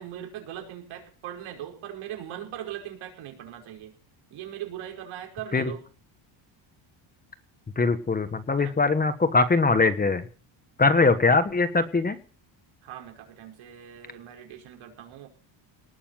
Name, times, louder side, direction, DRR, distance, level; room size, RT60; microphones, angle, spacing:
voice 1, 0.0-3.9 4.3-5.8 8.6-8.7 12.8-15.3, right 11 dB, 75° right, 2 dB, 5.4 m, -40 dB
voice 2, 7.8-10.3 10.8-12.2, left 3 dB, 20° left, 11 dB, 1.3 m, -22 dB
19.5 x 7.0 x 9.1 m, 0.39 s
cardioid pair, 145°, 48 cm